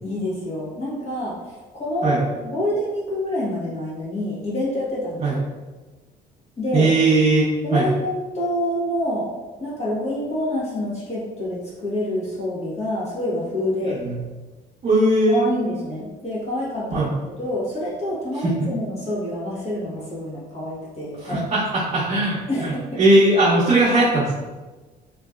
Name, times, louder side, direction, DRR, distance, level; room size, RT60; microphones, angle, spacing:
voice 1, 0.0-5.4 6.6-6.9 7.6-9.3 9.6-14.0 15.3-21.4 22.5-23.0, left 1 dB, 40° left, -6 dB, 1.3 m, -27 dB
voice 2, 6.7-7.9 13.9-14.1 14.8-15.5 16.9-17.1 18.4-18.5 21.3-22.7 23.0-24.3, right 2 dB, 45° right, -9 dB, 0.8 m, -19 dB
3.0 x 2.8 x 2.4 m, 1.2 s
cardioid pair, 110°, 17 cm